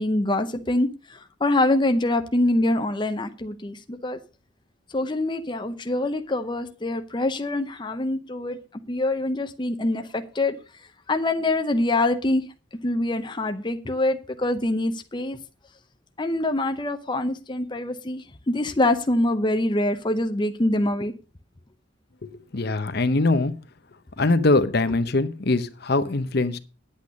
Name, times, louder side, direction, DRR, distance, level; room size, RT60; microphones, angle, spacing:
voice 1, 0.0-4.2 4.9-8.6 8.9-10.6 11.1-12.4 12.8-15.4 16.2-21.1, left 2 dB, 25° left, 0.7 m, -25 dB
voice 2, 22.2-23.5 24.2-26.6, left 2 dB, 55° left, 0.8 m, -22 dB
10.5 x 8.5 x 5.2 m
head